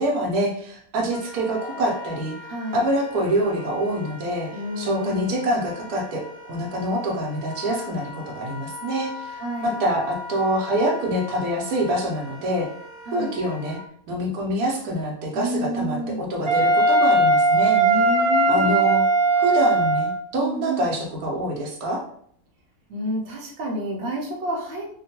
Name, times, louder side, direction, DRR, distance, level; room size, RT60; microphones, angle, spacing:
voice 1, 0.0-2.4 2.7-4.5 4.8-6.2 6.5-12.7 13.1-13.8 14.1-17.8 18.5-19.0 19.4-22.0, right 1 dB, 80° right, -1 dB, 1.2 m, -25 dB
Wind instrument woodwind instrument, 1.1-13.8, left 3 dB, 75° left, 1.2 m, -40 dB
voice 2, 2.4-2.9 4.5-5.4 9.3-9.8 13.1-13.3 15.3-16.2 17.7-18.8 20.4-20.9 22.9-24.9, right 1 dB, 60° right, -1 dB, 0.9 m, -30 dB
Wind instrument woodwind instrument 2, 16.5-20.2, right 2 dB, 40° right, 0.5 m, -19 dB
2.9 x 2.2 x 2.8 m, 0.65 s
omnidirectional pair, 1.6 m